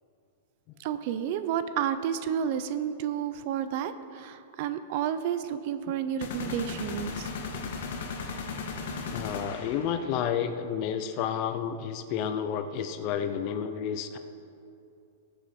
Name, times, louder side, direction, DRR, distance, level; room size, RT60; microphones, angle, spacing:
voice 1, 0.8-7.3, right 9 dB, 35° right, 12 dB, 0.5 m, -31 dB
sound 1, 6.2-10.2, left 4 dB, 55° left, 1.5 m, -36 dB
voice 2, 9.1-14.2, left 8 dB, 30° left, 9 dB, 0.6 m, -31 dB
20.0 x 7.6 x 4.3 m, 2.5 s
supercardioid pair, 175°, 0 cm